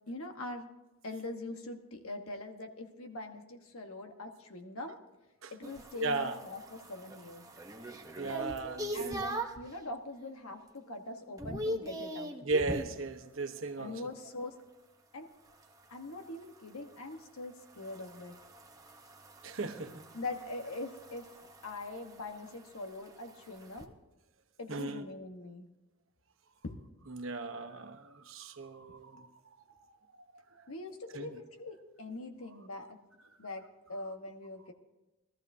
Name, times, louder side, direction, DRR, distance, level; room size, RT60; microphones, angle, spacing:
voice 1, 0.1-0.7 1.0-5.0 5.5-7.5 8.9-12.3 13.8-14.6 15.1-15.3 15.9-18.3 20.1-21.3 21.6-23.9 24.6-25.7 26.6-26.8 30.7-33.0 33.4-34.7, left 2 dB, 80° left, 1.3 m, -43 dB
sound 1, 5.6-9.7 10.2-10.6 10.9-13.0 15.5-23.9, right 1 dB, 15° right, 0.8 m, -42 dB
voice 2, 6.0-6.4 8.2-9.2 12.4-13.9 19.4-20.0 24.7-25.0 27.1-29.3 31.1-31.3, right 3 dB, 65° right, 1.0 m, -36 dB
21.5 x 13.5 x 2.7 m
head